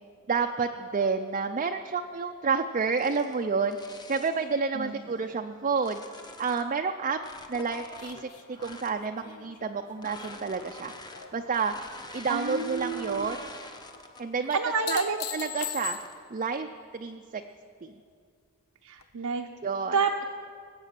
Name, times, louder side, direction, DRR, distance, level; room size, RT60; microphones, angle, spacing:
voice 1, 0.3-3.8 4.1-6.0 6.4-7.2 7.5-10.9 11.3-11.7 12.1-13.4 14.2-14.6 14.9-15.0 15.3-16.0 16.3-17.4 17.8-17.9 19.6-20.0, right 5 dB, 35° right, 5 dB, 0.5 m, -29 dB
sound 1, 2.8-4.5 5.1-6.7 7.1-9.0 9.9-14.4 14.8-15.1 15.8-16.3, left 2 dB, 20° left, 1.0 m, -47 dB
voice 2, 4.7-5.3 12.3-13.3 14.4-15.2 18.8-19.5 19.9-20.2, right 5 dB, 80° right, 2 dB, 0.8 m, -30 dB
sound 2, 8.0-11.4 11.8-12.4 14.5-16.4 19.0-19.1, left 9 dB, 75° left, 0.9 m, -40 dB
20.0 x 8.2 x 7.5 m, 2.1 s
head